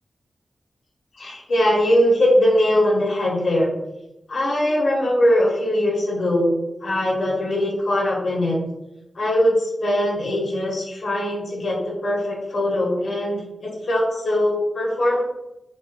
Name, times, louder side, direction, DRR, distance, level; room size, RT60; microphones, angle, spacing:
voice 1, 1.2-3.7 4.3-8.6 9.2-15.2, left 1 dB, 60° left, -4 dB, 0.8 m, -21 dB
3.3 x 2.9 x 2.2 m, 0.91 s
wide cardioid pair, 165°, 0 cm